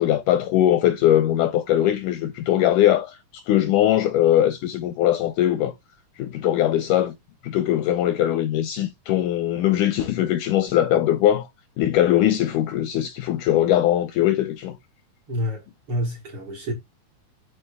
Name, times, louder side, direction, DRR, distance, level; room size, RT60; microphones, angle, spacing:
voice 1, 0.0-5.7 6.2-7.1 7.4-11.5 11.8-14.8, left 12 dB, 80° left, 1.8 m, -21 dB
voice 2, 15.3-16.7, equal, 55° right, 1.6 m, -28 dB
13.0 x 4.5 x 2.2 m
omnidirectional pair, 4.1 m